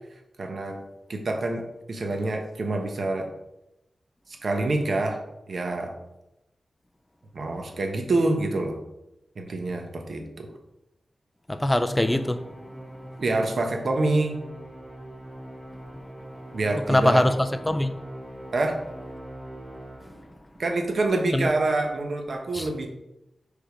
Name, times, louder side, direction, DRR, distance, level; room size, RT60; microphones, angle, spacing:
voice 1, 0.4-0.8 1.1-3.3 4.4-5.2 5.5-5.9 7.3-8.8 9.4-10.5 13.2-14.4 16.5-17.2 18.5-18.8 20.6-22.9, right 2 dB, 60° right, 1.1 m, -26 dB
voice 2, 11.5-12.4 16.9-17.9 21.3-21.5 22.5-22.7, left 1 dB, 10° left, 0.4 m, -22 dB
Musical instrument, 11.8-20.4, right 1 dB, 45° right, 2.0 m, -41 dB
5.0 x 5.0 x 5.0 m
wide cardioid pair, 105°, 0 cm